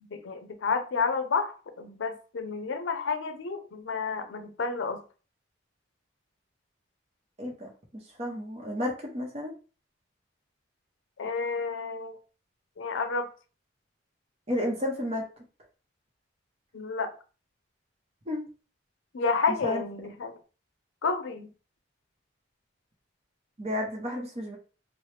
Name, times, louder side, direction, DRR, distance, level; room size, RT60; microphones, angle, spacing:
voice 1, 0.1-5.0 11.2-12.2 12.8-13.3 16.7-17.1 19.1-20.3 21.0-21.5, left 4 dB, 75° left, 0.5 m, -30 dB
voice 2, 7.4-9.5 14.5-15.2 18.3-18.4 19.6-19.8 23.6-24.6, left 1 dB, 30° right, 0.7 m, -32 dB
3.0 x 2.0 x 3.2 m
head